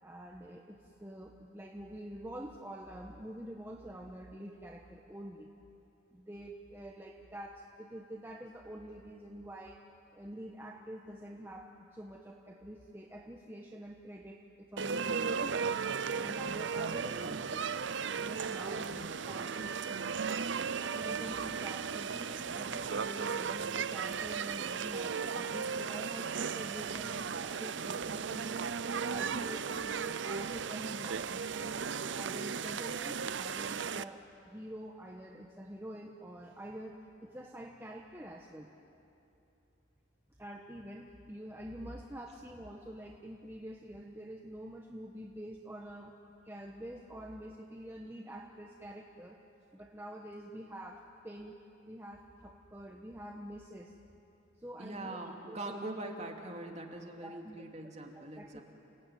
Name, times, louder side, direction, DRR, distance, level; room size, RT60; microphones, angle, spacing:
voice 1, 0.0-5.5 6.1-9.8 10.1-15.6 16.1-17.7 18.2-19.9 20.9-28.7 29.1-31.8 32.1-36.9 37.2-38.7 40.4-46.1 46.4-49.4 49.7-51.6 51.9-53.9 54.6-55.2 55.5-55.8 57.2-58.6, right 1 dB, 10° right, 0 dB, 1.2 m, -47 dB
sound 1, 14.8-34.0, right 6 dB, 65° right, 0.6 m, -36 dB
voice 2, 54.8-58.6, right 2 dB, 35° right, 1 dB, 2.7 m, -42 dB
29.5 x 17.5 x 9.4 m, 2.8 s
head